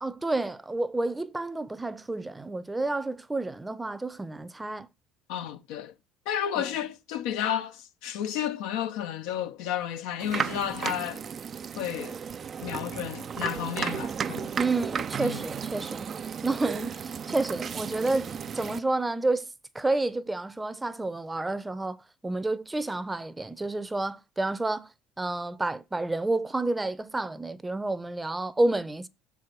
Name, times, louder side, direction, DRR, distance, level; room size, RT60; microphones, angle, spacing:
voice 1, 0.0-4.9 6.6-6.7 14.6-16.1 16.4-19.5 19.7-22.0 22.2-24.9 25.2-29.1, right 2 dB, 15° right, 0.7 m, -30 dB
voice 2, 5.3-5.9 6.3-11.2 11.8-12.2 12.6-14.5 15.2-15.4, left 10 dB, 80° left, 0.9 m, -32 dB
sound 1, 10.2-18.8, right 7 dB, 40° right, 0.4 m, -34 dB
6.9 x 4.8 x 6.1 m
supercardioid pair, 95°, 0 cm